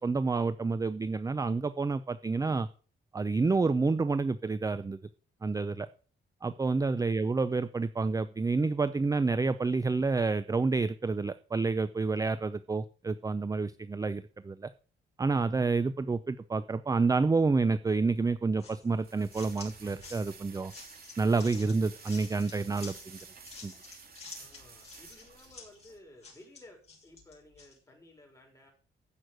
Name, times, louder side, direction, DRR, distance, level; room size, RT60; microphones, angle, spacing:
voice 1, 0.0-2.7 3.1-5.0 5.4-5.9 6.4-14.7 15.2-20.7 21.2-23.2 23.6-23.7, right 4 dB, 15° right, 13 dB, 0.5 m, -29 dB
voice 2, 6.5-7.0 24.3-28.7, left 1 dB, 15° left, 1 dB, 5.5 m, -56 dB
sound 1, 18.1-26.0, right 5 dB, 50° right, 3.2 m, -52 dB
sound 2, 18.6-27.8, left 4 dB, 30° left, 6.4 m, -50 dB
15.5 x 6.4 x 6.5 m, 0.40 s
cardioid pair, 135°, 21 cm